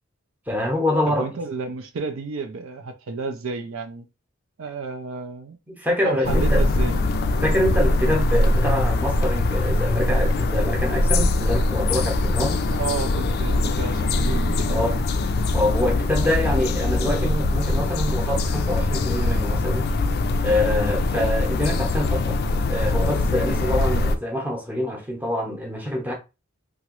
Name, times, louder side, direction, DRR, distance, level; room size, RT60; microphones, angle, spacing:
voice 1, 0.5-1.3 5.7-6.6 7.4-12.6 14.7-14.9 15.5-19.9 20.4-22.4 22.7-26.1, left 1 dB, 10° right, 0.8 m, -25 dB
voice 2, 1.1-4.0 4.6-5.6 6.0-7.0 12.7-15.0, right 4 dB, 65° right, 0.5 m, -31 dB
sound 1, 6.2-24.2, left 2 dB, 50° left, 0.3 m, -22 dB
2.9 x 2.4 x 3.0 m
head